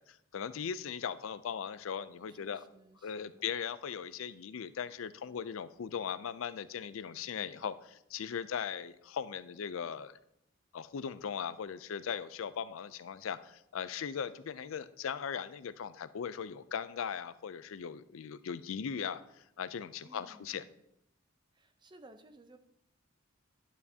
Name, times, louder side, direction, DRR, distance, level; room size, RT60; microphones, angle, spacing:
voice 1, 0.0-2.6 3.0-10.2 10.7-19.2 19.6-20.6, left 7 dB, 80° left, 14 dB, 0.4 m, -39 dB
voice 2, 2.3-3.5 20.0-20.7 21.5-22.6, right 1 dB, 20° right, 9 dB, 0.6 m, -58 dB
10.5 x 9.1 x 2.8 m, 0.79 s
head